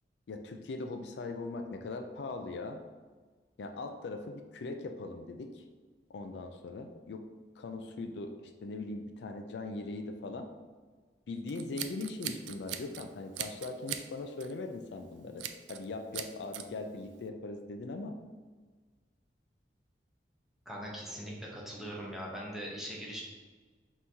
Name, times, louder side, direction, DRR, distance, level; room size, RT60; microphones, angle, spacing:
voice 1, 0.3-2.8 3.6-5.6 6.1-7.2 7.6-10.5 11.3-18.2, left 3 dB, 70° left, 6 dB, 0.4 m, -40 dB
Scissors, 11.5-13.0 13.3-14.1 14.4-14.6 15.4-15.8 16.1-16.6, right 10 dB, 85° right, 0.3 m, -40 dB
voice 2, 20.7-23.2, equal, 5° right, -4 dB, 0.8 m, -41 dB
5.5 x 3.0 x 2.7 m, 1.4 s
head